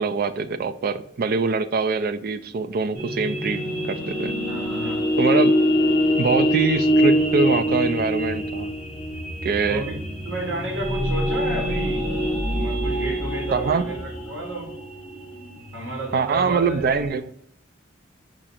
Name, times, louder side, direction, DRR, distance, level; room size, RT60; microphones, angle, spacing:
voice 1, 0.0-4.3 5.2-5.5 6.2-8.7 9.4-9.8 13.5-13.9 16.1-17.3, right 5 dB, 50° right, 11 dB, 0.3 m, -24 dB
sound 1, 2.9-17.1, equal, 10° right, 1.7 m, -24 dB
voice 2, 4.5-5.0 9.7-9.9 10.2-12.1 12.4-14.7 15.7-17.0, right 1 dB, 70° right, 0 dB, 1.3 m, -32 dB
4.8 x 2.5 x 4.2 m, 0.69 s
head